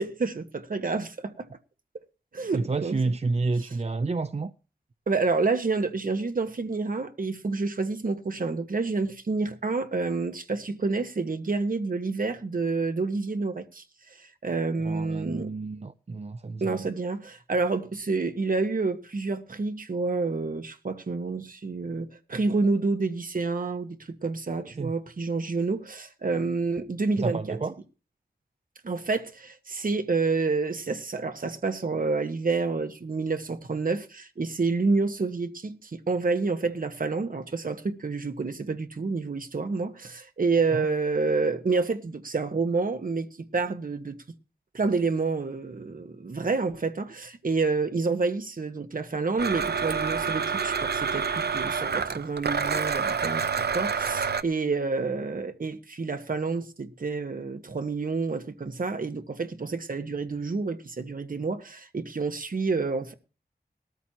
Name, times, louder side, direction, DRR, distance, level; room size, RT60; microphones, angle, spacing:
voice 1, 0.0-1.5 2.3-3.0 5.1-13.8 14.4-15.5 16.6-27.6 28.8-44.2 44.7-63.1, right 3 dB, 55° right, 1.5 m, -28 dB
voice 2, 2.5-4.5 14.8-16.9 24.6-24.9 27.2-27.7 40.7-40.9, right 3 dB, 40° right, 0.6 m, -30 dB
Domestic sounds home sounds, 49.4-54.4, right 6 dB, 80° right, 0.8 m, -28 dB
19.0 x 13.5 x 2.9 m
wide cardioid pair, 100°, 17 cm